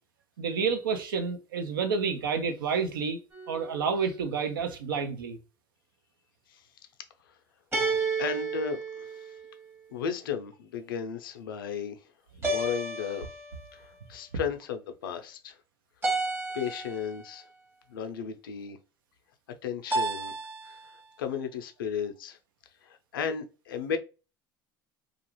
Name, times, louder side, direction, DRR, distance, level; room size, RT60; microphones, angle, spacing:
voice 1, 0.4-3.2 3.5-5.4, right 5 dB, 90° right, 0.5 m, -29 dB
sound 1, 3.3-4.0 7.7-9.7 12.4-13.8 16.0-17.2 19.9-20.9, right 3 dB, 20° right, 0.9 m, -32 dB
voice 2, 8.2-9.3 9.9-12.0 12.4-13.3 13.7-15.6 16.5-17.4 17.9-18.8 19.6-20.3 20.6-20.8 21.2-22.4 22.8-24.0, left 7 dB, 90° left, 0.5 m, -34 dB
2.4 x 2.3 x 3.0 m
hypercardioid pair, 75°, 11 cm